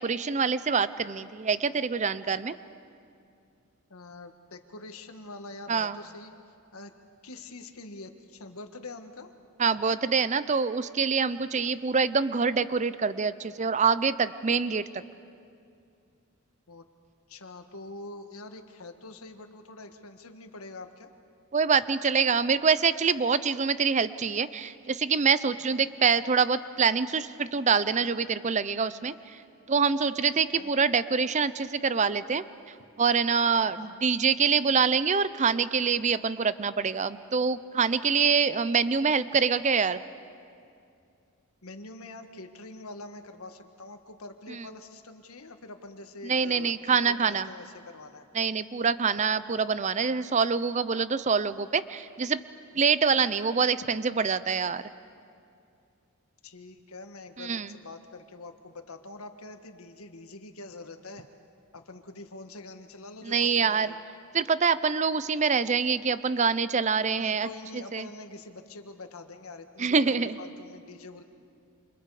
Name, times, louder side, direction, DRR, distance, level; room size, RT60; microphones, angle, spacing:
voice 1, 0.0-2.6 5.7-6.0 9.6-15.0 21.5-29.4 29.7-40.0 44.5-44.6 46.2-47.5 48.3-52.4 52.8-54.9 57.4-57.7 63.2-63.9 64.3-67.5 67.7-68.1 69.8-70.4, right 5 dB, 35° right, 15 dB, 0.6 m, -25 dB
voice 2, 3.9-6.3 6.7-6.9 7.2-9.3 16.7-16.8 17.3-21.1 25.7-25.9 30.5-30.7 33.6-33.9 41.6-48.2 56.4-61.3 61.7-64.0 67.2-71.2, left 2 dB, 85° left, 7 dB, 1.6 m, -45 dB
28.5 x 27.5 x 4.9 m, 2.5 s
head